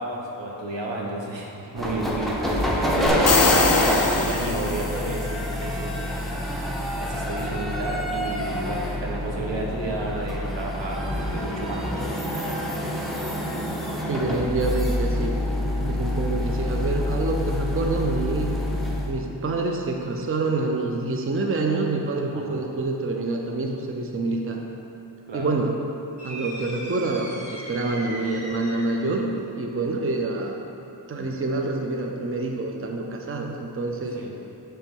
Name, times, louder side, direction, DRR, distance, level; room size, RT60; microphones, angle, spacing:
voice 1, 0.0-3.5 4.2-6.4 7.0-12.3 22.3-22.7 25.3-25.5 34.1-34.3, right 1 dB, 80° right, -2 dB, 1.0 m, -32 dB
sound 1, 1.8-19.1, left 1 dB, ahead, 0.7 m, -26 dB
sound 2, 3.1-5.1, left 4 dB, 40° left, 0.5 m, -23 dB
voice 2, 14.1-15.3 15.8-18.6 19.1-24.6 25.3-25.7 26.2-29.3 29.6-30.6 31.1-34.2, right 3 dB, 30° right, 2 dB, 0.5 m, -27 dB
sound 3, 26.2-29.1, right 1 dB, 15° right, 1.4 m, -38 dB
7.2 x 3.4 x 5.3 m, 2.9 s
wide cardioid pair, 90°, 43 cm